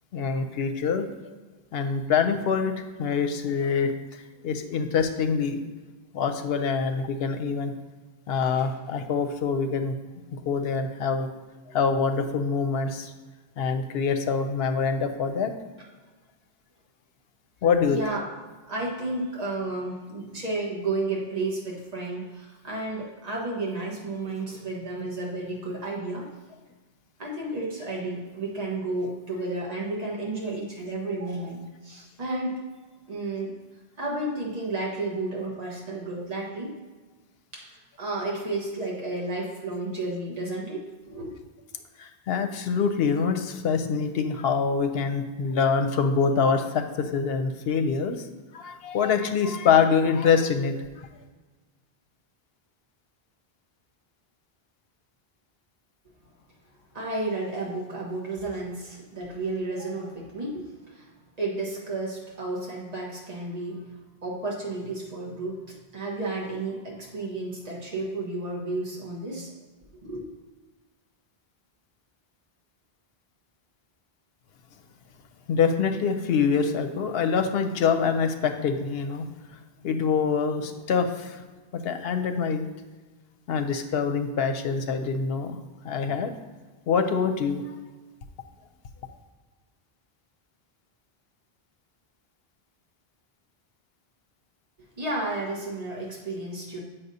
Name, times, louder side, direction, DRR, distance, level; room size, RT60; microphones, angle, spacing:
voice 1, 0.1-1.0 1.7-5.6 6.1-7.7 8.3-9.9 10.3-11.3 11.7-13.1 13.6-15.5 17.6-18.0 42.0-48.3 48.5-51.1 75.5-81.4 81.7-82.7 83.5-85.6 85.8-86.3 86.9-87.8, left 5 dB, 75° left, 7 dB, 0.8 m, -25 dB
voice 2, 17.9-18.3 18.7-26.3 27.2-32.6 33.1-33.5 34.0-36.7 37.5-41.3 56.9-61.1 61.4-63.9 64.2-69.5 70.0-70.2 95.0-96.8, right 2 dB, 40° right, -3 dB, 1.3 m, -32 dB
7.8 x 5.6 x 2.7 m, 1.3 s
omnidirectional pair, 1.0 m